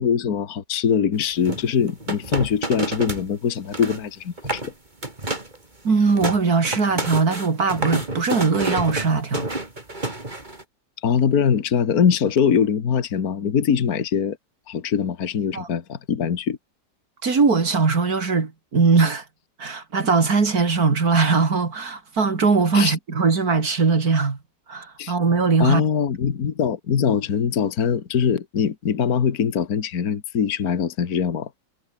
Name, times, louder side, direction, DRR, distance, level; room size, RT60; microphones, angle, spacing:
voice 1, 0.0-4.7 11.0-14.4 14.7-16.6 22.7-22.9 25.0-25.1 25.6-31.5, left 7 dB, 55° left, 2.0 m, -22 dB
sound 1, 1.4-3.3 3.6-4.0 4.4-4.7 5.0-5.6 5.9-10.6, right 2 dB, 25° right, 3.8 m, -29 dB
voice 2, 5.8-9.5 15.5-15.7 17.2-19.2 19.6-24.4 24.7-25.8, right 4 dB, 50° right, 3.0 m, -20 dB
omnidirectional pair, 2.0 m